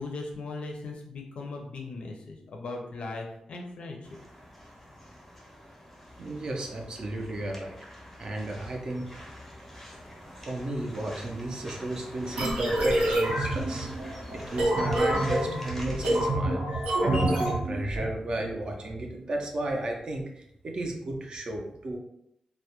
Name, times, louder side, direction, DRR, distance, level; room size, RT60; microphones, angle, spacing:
voice 1, 0.0-4.0, left 3 dB, 60° left, 1 dB, 0.4 m, -38 dB
sound 1, 4.0-16.3, equal, 5° left, 0.6 m, -45 dB
voice 2, 6.2-7.8 8.2-9.1 10.4-22.0, right 1 dB, 45° right, 1 dB, 0.4 m, -33 dB
sound 2, 12.4-18.1, right 1 dB, 90° right, 0.9 m, -27 dB
2.2 x 2.0 x 2.8 m, 0.76 s
wide cardioid pair, 170°, 2 cm